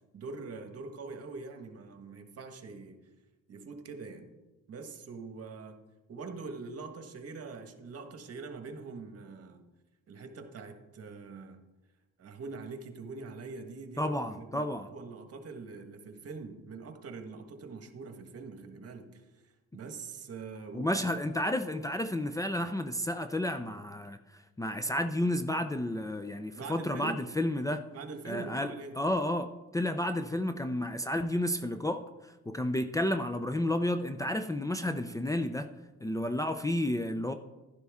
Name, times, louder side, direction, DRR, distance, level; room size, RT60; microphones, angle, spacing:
voice 1, 0.1-3.0 3.5-4.3 4.7-5.8 6.1-9.6 10.1-11.6 12.2-21.2 26.5-27.3 27.9-29.0, right 4 dB, 50° right, 6 dB, 1.5 m, -44 dB
voice 2, 14.0-14.9 20.7-24.2 24.6-27.8 28.3-35.7 36.0-37.3, left 1 dB, 10° left, 8 dB, 0.5 m, -31 dB
11.5 x 11.0 x 3.6 m, 1.1 s
cardioid pair, 90°, 30 cm